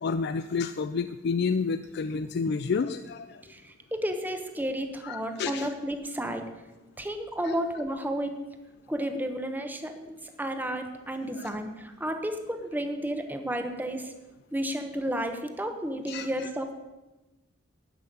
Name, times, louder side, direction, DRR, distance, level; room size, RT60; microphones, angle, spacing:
voice 1, 0.0-3.4 5.0-5.7 7.4-7.5 11.3-11.5 16.1-16.5, left 5 dB, 55° left, 11 dB, 0.4 m, -30 dB
voice 2, 3.5-6.5 7.0-8.4 8.9-14.1 14.5-16.7, right 1 dB, 10° right, 6 dB, 1.0 m, -32 dB
12.0 x 5.7 x 8.6 m, 1.1 s
head